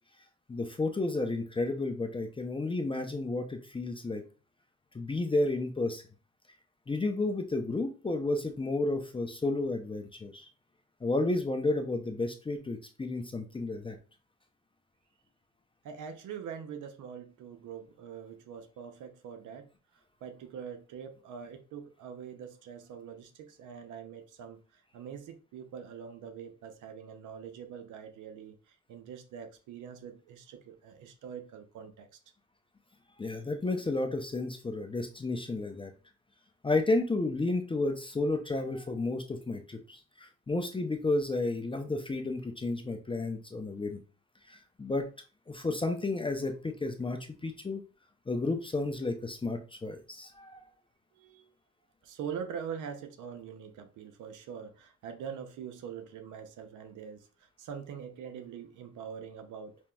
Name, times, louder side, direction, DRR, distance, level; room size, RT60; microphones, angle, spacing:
voice 1, 0.5-4.3 4.9-6.0 6.9-10.5 11.0-14.0 33.2-35.9 36.6-44.0 44.5-45.1 45.5-47.8 48.3-50.6, left 2 dB, 15° left, 0.5 m, -32 dB
voice 2, 15.8-32.2 51.1-51.5 52.0-59.9, right 7 dB, 85° right, 0.7 m, -44 dB
5.2 x 2.9 x 2.3 m
cardioid pair, 90°, 30 cm